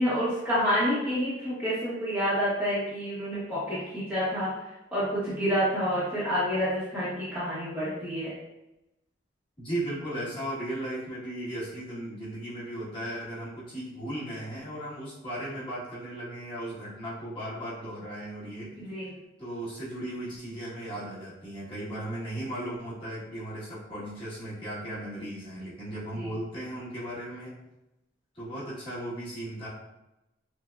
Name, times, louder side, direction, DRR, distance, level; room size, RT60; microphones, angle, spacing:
voice 1, 0.0-4.5 4.9-8.3 18.8-19.1 26.1-26.3, equal, 10° right, -11 dB, 0.8 m, -28 dB
voice 2, 9.6-18.8 19.4-27.5 28.3-29.7, right 1 dB, 25° left, -10 dB, 1.3 m, -36 dB
5.7 x 2.0 x 2.3 m, 0.94 s
head